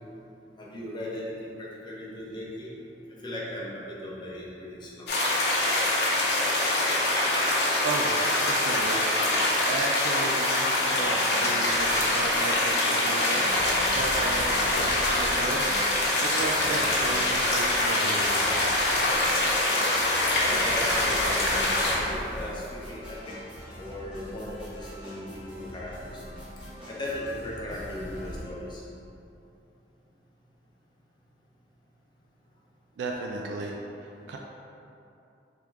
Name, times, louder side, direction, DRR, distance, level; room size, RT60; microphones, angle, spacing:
voice 1, 0.6-2.7 3.2-5.1 20.4-23.3 23.8-26.2 26.9-28.8, left 1 dB, 25° left, -5 dB, 0.7 m, -37 dB
sound 1, 5.1-22.0, left 1 dB, 65° left, 0.7 m, -24 dB
voice 2, 7.8-9.3 9.6-18.6 33.0-33.8 34.3-34.4, right 2 dB, 85° right, 0 dB, 0.3 m, -34 dB
sound 2, 10.9-28.4, equal, 5° right, 1.2 m, -42 dB
3.5 x 3.1 x 3.5 m, 2.8 s
head